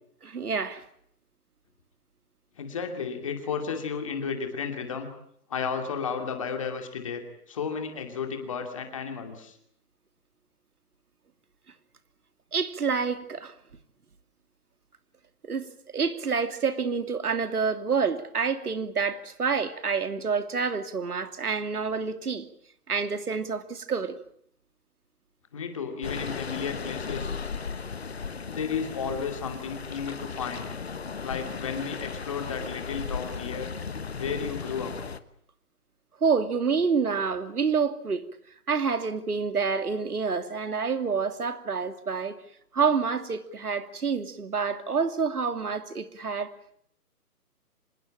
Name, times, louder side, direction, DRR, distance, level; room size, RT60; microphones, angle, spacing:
voice 1, 0.2-0.8 12.5-13.5 15.4-22.4 22.9-24.2 36.2-38.3 38.7-42.4 42.7-46.5, right 5 dB, 70° right, 2.7 m, -28 dB
voice 2, 2.6-5.1 5.5-7.2 7.5-9.6 25.5-27.3 28.4-30.7 31.2-33.7 34.2-34.9, left 6 dB, 20° left, 2.6 m, -33 dB
sound 1, 26.0-35.2, left 5 dB, 40° left, 1.2 m, -36 dB
26.0 x 20.5 x 8.8 m
hypercardioid pair, 175°, 46 cm